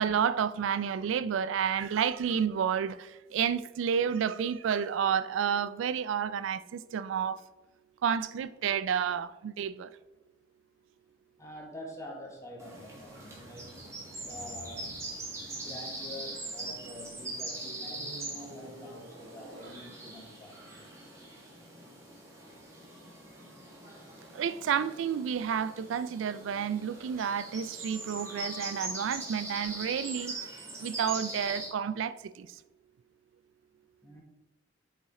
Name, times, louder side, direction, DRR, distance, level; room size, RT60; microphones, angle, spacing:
voice 1, 0.0-7.4 8.0-9.9 24.3-30.4 30.8-32.5, right 7 dB, 85° right, 0.3 m, -30 dB
voice 2, 11.4-13.7 14.2-15.0 15.5-20.7 34.0-34.2, left 1 dB, 15° left, 0.9 m, -46 dB
sound 1, 12.4-17.1 17.8-20.3 21.0-21.2, right 2 dB, 70° right, 0.7 m, -51 dB
sound 2, 12.6-31.7, right 2 dB, 15° right, 1.5 m, -42 dB
7.1 x 4.2 x 3.6 m
head